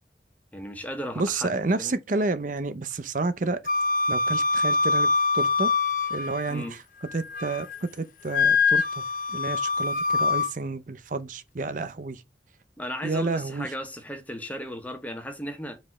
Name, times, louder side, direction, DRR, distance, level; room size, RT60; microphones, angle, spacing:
voice 1, 0.5-1.5 1.8-2.0 6.5-6.7 12.8-15.8, equal, 10° left, 1.1 m, -35 dB
voice 2, 1.2-3.6 4.1-5.7 6.1-6.8 7.1-9.0 9.3-12.2 13.0-13.7, right 3 dB, 45° right, 0.6 m, -30 dB
Wind instrument woodwind instrument, 3.7-6.7 7.1-7.8 8.3-10.5, left 4 dB, 50° left, 0.7 m, -24 dB
5.2 x 4.1 x 5.9 m
head